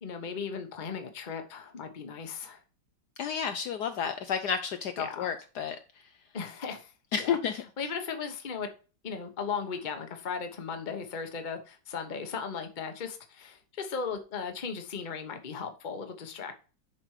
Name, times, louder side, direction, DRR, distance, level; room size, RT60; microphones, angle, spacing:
voice 1, 0.0-2.6 5.0-5.3 6.3-7.4 7.8-8.7 9.0-16.6, left 5 dB, 30° left, 1.0 m, -37 dB
voice 2, 3.2-5.8 7.1-7.6, left 7 dB, 70° left, 1.1 m, -31 dB
7.3 x 5.2 x 4.8 m
omnidirectional pair, 2.1 m